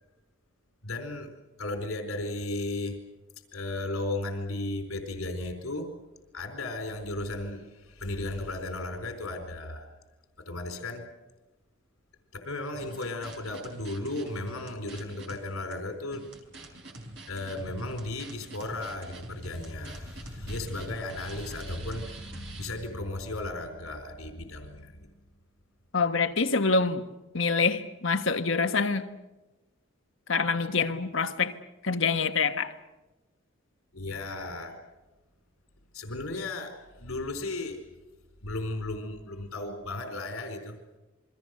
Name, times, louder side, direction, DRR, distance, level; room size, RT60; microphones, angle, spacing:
voice 1, 0.8-1.3 1.6-3.0 3.5-5.9 6.3-9.9 10.4-11.0 12.3-16.3 17.3-25.1 33.9-34.8 35.9-37.9 38.4-40.8, left 2 dB, 85° left, 5 dB, 4.3 m, -35 dB
sound 1, 12.7-15.4 15.7-15.8 16.1-22.7, right 2 dB, 55° right, 4.5 m, -46 dB
voice 2, 25.9-27.0 27.3-29.1 30.3-31.6 31.8-32.7, left 4 dB, 65° left, 8 dB, 1.3 m, -26 dB
28.5 x 23.0 x 6.6 m, 1.1 s
head